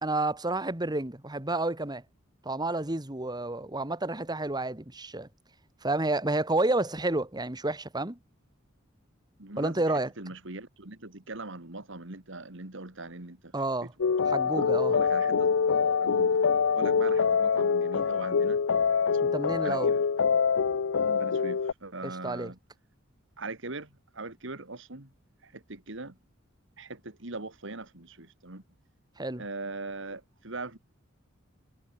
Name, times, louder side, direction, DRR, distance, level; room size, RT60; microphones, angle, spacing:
voice 1, 0.0-2.0 2.4-5.3 5.8-8.2 9.6-10.1 13.5-13.9 14.3-15.0 19.3-19.9 22.0-22.5 29.2-29.4, right 2 dB, 20° right, 2.0 m, -30 dB
voice 2, 9.4-13.5 13.8-13.9 14.4-15.5 16.0-16.4 16.7-18.6 19.1-20.0 21.0-22.6 23.4-25.1 25.4-26.2 26.8-28.6 29.4-30.8, right 2 dB, 65° right, 2.6 m, -41 dB
sound 1, 14.0-21.7, left 6 dB, 75° left, 0.6 m, -25 dB
head